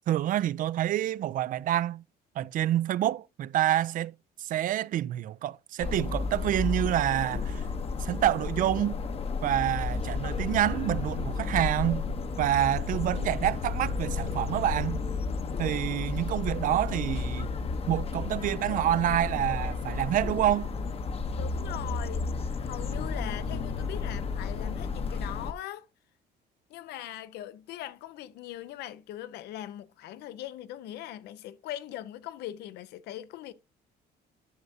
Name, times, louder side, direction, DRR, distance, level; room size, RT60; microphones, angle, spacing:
voice 1, 0.1-2.0 2.4-7.6 8.0-9.0 9.4-12.0 12.4-15.0 15.6-17.5 17.9-20.7, right 12 dB, 55° right, 0.4 m, -27 dB
sound 1, 5.8-25.5, left 4 dB, 35° left, 0.8 m, -32 dB
voice 2, 21.3-22.3 22.6-25.9 26.7-33.5, left 12 dB, 80° left, 0.7 m, -40 dB
11.0 x 6.5 x 2.7 m
cardioid pair, 110°, 17 cm